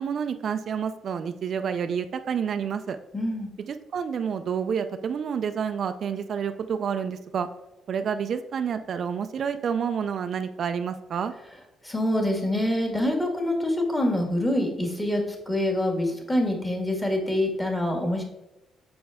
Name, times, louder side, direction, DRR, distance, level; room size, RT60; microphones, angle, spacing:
voice 1, 0.0-3.0 3.6-7.5 7.9-11.3, right 7 dB, 60° right, 9 dB, 0.4 m, -29 dB
voice 2, 3.1-3.5 11.8-18.2, left 1 dB, 15° left, 1 dB, 1.8 m, -25 dB
6.6 x 4.4 x 3.4 m, 0.98 s
cardioid pair, 90°, 0 cm